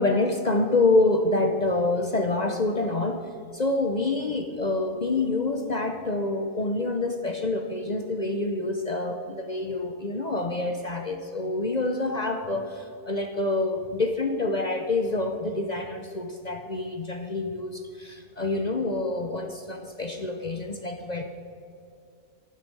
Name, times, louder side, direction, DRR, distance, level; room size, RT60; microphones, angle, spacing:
voice 1, 0.0-21.2, left 2 dB, 40° left, 6 dB, 0.7 m, -27 dB
11.5 x 10.0 x 6.1 m, 2.5 s
omnidirectional pair, 1.5 m